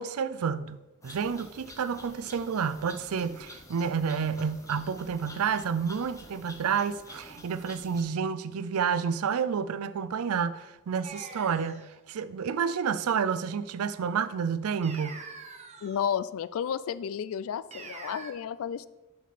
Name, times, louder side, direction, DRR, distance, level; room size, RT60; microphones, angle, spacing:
voice 1, 0.0-15.3, right 6 dB, 75° right, 0.4 m, -30 dB
sound 1, 1.0-8.0, left 1 dB, 15° left, 0.8 m, -49 dB
sound 2, 11.0-11.9 14.8-16.1 17.7-18.3, right 4 dB, 30° right, 0.8 m, -44 dB
voice 2, 15.8-18.9, left 8 dB, 65° left, 0.3 m, -32 dB
7.3 x 5.8 x 4.1 m
head